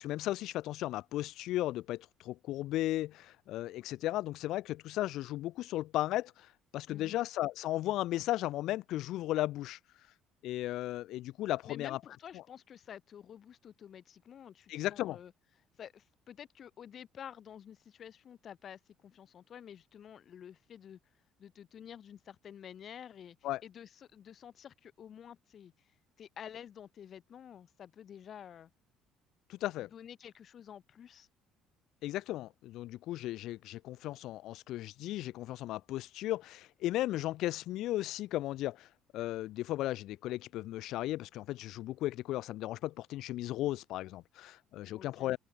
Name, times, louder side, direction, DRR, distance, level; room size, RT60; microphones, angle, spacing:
voice 1, 0.0-6.5 6.7-9.8 10.4-12.0 14.7-15.2 23.4-23.6 29.5-29.9 32.0-38.9 39.1-45.4, left 15 dB, 75° left, 0.5 m, -35 dB
voice 2, 6.9-7.2 11.6-15.3 15.8-21.0 21.4-23.4 23.6-25.9 26.2-28.7 29.9-31.3 44.9-45.3, left 9 dB, 50° left, 2.1 m, -50 dB
supercardioid pair, 80°, 0 cm